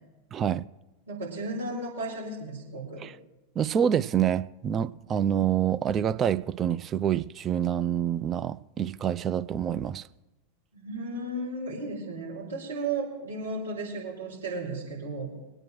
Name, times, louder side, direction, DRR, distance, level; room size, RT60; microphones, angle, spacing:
voice 1, 0.3-0.6 3.0-3.1 3.6-10.1, right 9 dB, 25° right, 0.4 m, -27 dB
voice 2, 1.1-3.0 10.7-15.3, right 2 dB, 75° right, 4.3 m, -34 dB
23.5 x 8.9 x 3.2 m
figure-of-eight pair, 90°, 0 cm